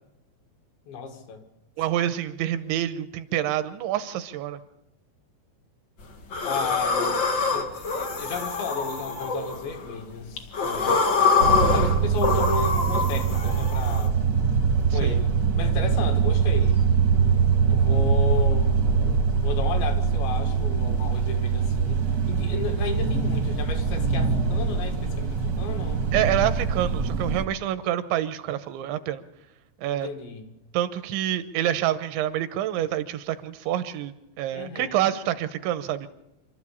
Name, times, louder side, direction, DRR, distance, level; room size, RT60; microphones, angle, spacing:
voice 1, 0.9-1.4 6.4-11.4 11.7-14.2 14.9-16.8 17.7-18.7 19.4-26.0 29.9-30.5 34.5-35.1, left 5 dB, 70° left, 5 dB, 4.2 m, -34 dB
voice 2, 1.8-4.6 14.9-15.2 26.1-29.2 29.8-30.1 30.7-36.1, right 12 dB, 80° right, 11 dB, 3.1 m, -27 dB
Heavy Breath Wheezing, 6.3-9.9 10.4-14.0, left 4 dB, 85° left, 1.0 m, -25 dB
sound 1, 11.4-27.4, right 6 dB, 55° right, 1.2 m, -23 dB
26.5 x 13.0 x 8.6 m, 0.93 s
omnidirectional pair, 5.4 m